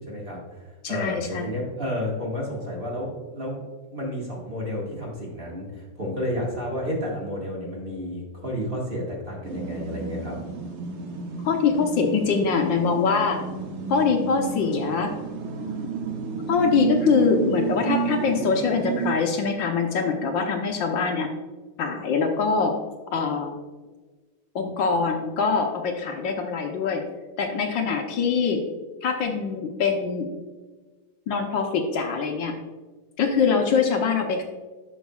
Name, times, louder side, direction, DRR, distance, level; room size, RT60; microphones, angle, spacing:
voice 1, 0.0-3.6 3.9-10.4, equal, 30° right, -3 dB, 1.7 m, -31 dB
voice 2, 0.8-1.5 11.4-13.4 13.9-15.2 16.5-21.3 21.8-22.7 23.1-23.6 24.5-27.0 27.4-28.6 29.0-30.3 31.3-32.5 33.2-34.4, left 5 dB, 70° left, 3 dB, 1.4 m, -23 dB
sound 1, 9.4-19.1, right 6 dB, 75° right, 1.8 m, -31 dB
11.5 x 6.2 x 2.3 m, 1.3 s
omnidirectional pair, 2.3 m